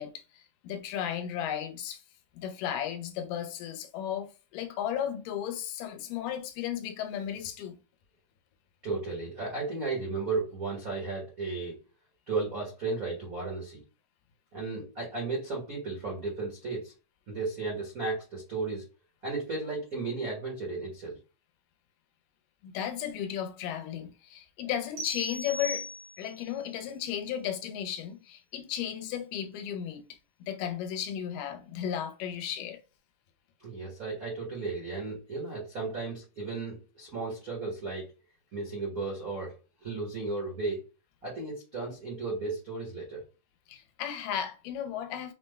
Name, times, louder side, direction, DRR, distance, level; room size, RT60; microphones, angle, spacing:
voice 1, 0.0-2.0 2.3-7.8 22.6-25.9 26.2-30.2 30.5-32.8 43.7-45.3, left 9 dB, 85° left, 2.2 m, -35 dB
voice 2, 8.8-11.8 12.3-13.8 14.5-16.9 17.3-18.8 19.2-21.2 33.6-38.1 38.5-40.8 41.2-43.2, right 3 dB, 70° right, 0.8 m, -34 dB
sound 1, 25.0-26.5, left 1 dB, 85° right, 1.1 m, -38 dB
5.7 x 2.1 x 3.2 m
omnidirectional pair, 3.8 m